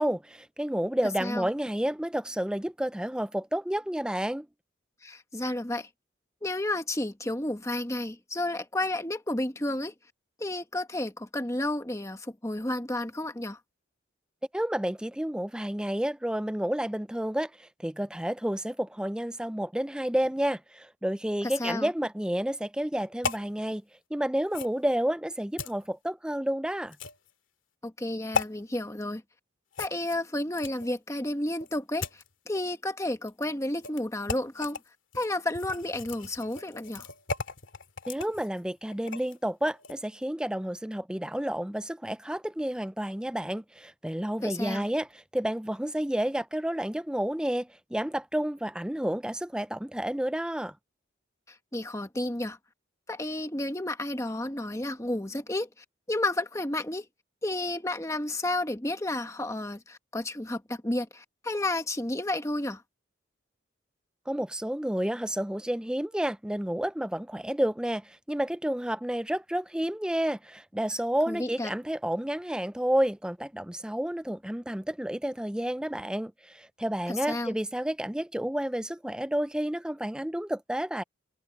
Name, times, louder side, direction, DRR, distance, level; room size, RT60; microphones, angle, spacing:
voice 1, 0.0-4.5 14.5-23.8 24.1-27.0 38.1-45.1 45.3-50.7 64.3-81.0, right 1 dB, 5° right, 0.4 m, -30 dB
voice 2, 5.0-5.9 6.4-9.9 10.4-13.6 21.6-21.9 27.8-29.2 29.8-34.8 35.1-37.0 44.4-44.8 51.7-52.6 53.1-55.7 56.1-57.1 57.4-62.8 71.3-71.7 77.1-77.6, left 1 dB, 15° left, 1.3 m, -31 dB
sound 1, 23.2-23.5 24.5-24.8 25.6-25.7 26.9-27.3 28.3-28.5 29.7-30.9 31.6-32.3 33.3-33.4 33.8-34.0 34.3-34.8 35.1-39.4 39.8-39.9, left 5 dB, 90° left, 2.3 m, -36 dB
head